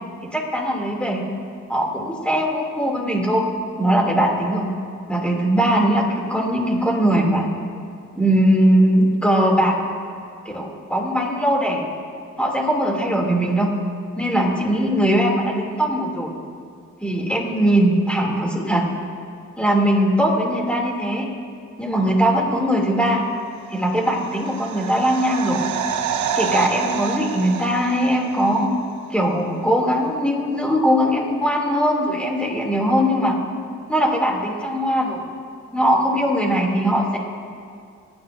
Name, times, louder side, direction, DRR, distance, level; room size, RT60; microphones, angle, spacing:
voice 1, 0.2-1.2 1.7-3.5 3.8-4.7 5.1-7.5 8.2-9.7 10.4-11.9 12.4-13.7 14.2-16.3 17.0-18.8 19.6-21.3 21.8-23.2 23.7-25.6 26.3-28.7 29.1-33.4 33.9-35.2 35.7-37.2, equal, 5° left, -1 dB, 2.8 m, -20 dB
sound 1, 23.8-28.7 28.9-29.0, right 7 dB, 70° right, 0.9 m, -28 dB
28.5 x 9.6 x 2.7 m, 2.3 s
cardioid pair, 90°, 30 cm